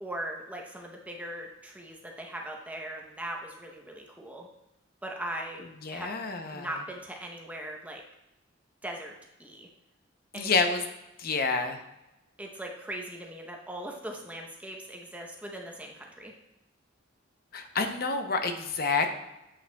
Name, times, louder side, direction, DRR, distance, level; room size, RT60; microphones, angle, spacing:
voice 1, 0.0-4.5 5.0-6.1 6.5-8.0 8.8-9.1 9.4-9.7 10.3-10.5 12.4-16.3, right 1 dB, 10° right, 0 dB, 0.7 m, -39 dB
voice 2, 5.8-6.7 10.3-10.8 11.2-11.8 17.5-19.1, left 4 dB, 50° left, 6 dB, 0.6 m, -28 dB
8.3 x 5.5 x 2.2 m, 0.93 s
head